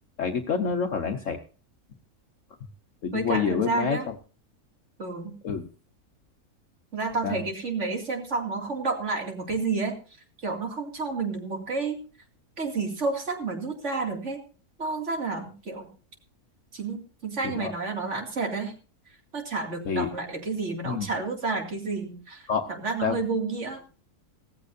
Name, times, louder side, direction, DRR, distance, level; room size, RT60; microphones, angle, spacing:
voice 1, 0.2-1.4 3.0-4.1 5.4-5.6 7.2-7.4 17.4-17.7 19.8-20.1 20.8-21.1 22.5-22.6 23.0-23.2, left 6 dB, 60° left, 5 dB, 1.3 m, -27 dB
voice 2, 3.1-4.1 5.0-5.3 6.9-10.0 10.4-12.0 12.6-14.4 14.8-15.9 16.7-18.7 19.3-22.4 22.8-23.8, right 4 dB, 50° right, 3 dB, 2.7 m, -30 dB
17.5 x 15.0 x 2.6 m, 0.37 s
omnidirectional pair, 1.6 m